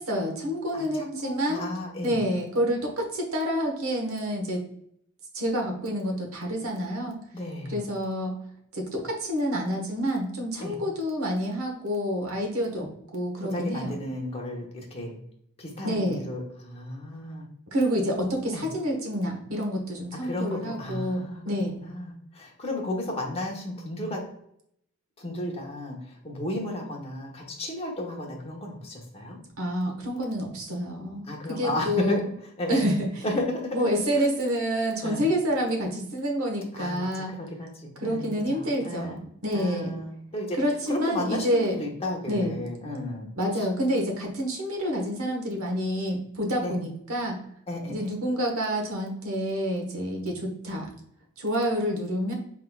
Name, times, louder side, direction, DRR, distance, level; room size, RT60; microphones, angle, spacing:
voice 1, 0.0-1.6 2.0-4.6 5.3-7.2 7.7-8.4 8.7-14.0 15.8-16.2 17.7-21.8 29.6-32.2 32.7-33.4 33.7-37.3 38.0-40.0 40.6-41.8 42.3-42.5 43.3-47.4 47.9-50.9 51.4-52.3, equal, 75° right, 1 dB, 1.2 m, -28 dB
voice 2, 0.7-2.2 7.3-7.8 10.6-10.8 13.4-15.2 15.6-17.5 18.5-18.7 20.1-21.4 21.8-24.2 25.2-29.4 31.3-32.2 32.6-32.9 33.2-34.0 35.0-35.2 36.7-37.1 37.4-39.2 39.5-40.6 40.9-43.3 43.5-43.7 46.6-46.8 47.7-47.9, left 1 dB, 30° left, -1 dB, 1.0 m, -33 dB
4.4 x 3.7 x 2.3 m, 0.71 s
head